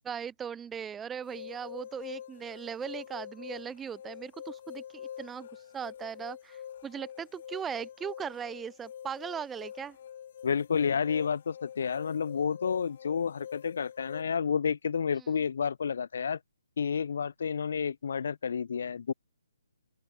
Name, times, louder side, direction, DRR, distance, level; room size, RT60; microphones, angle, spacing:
voice 1, 0.1-10.0 15.2-15.3, right 7 dB, 10° right, 4.3 m, -39 dB
sound 1, 1.2-14.2, left 9 dB, 40° left, 7.5 m, -45 dB
voice 2, 10.4-16.4 16.8-19.1, left 6 dB, 55° left, 7.6 m, -30 dB
open air
hypercardioid pair, 165°, 0 cm